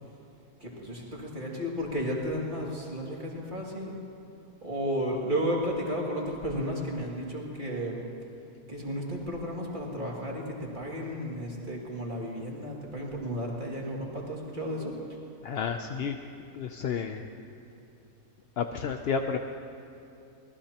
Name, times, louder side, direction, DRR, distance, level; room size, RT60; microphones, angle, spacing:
voice 1, 0.6-4.0 4.6-8.0 8.7-15.0, equal, 30° right, -3 dB, 2.5 m, -33 dB
voice 2, 15.4-16.2 16.5-17.3 18.6-19.4, left 6 dB, 60° left, 6 dB, 0.7 m, -31 dB
25.0 x 18.5 x 2.9 m, 2.8 s
omnidirectional pair, 1.6 m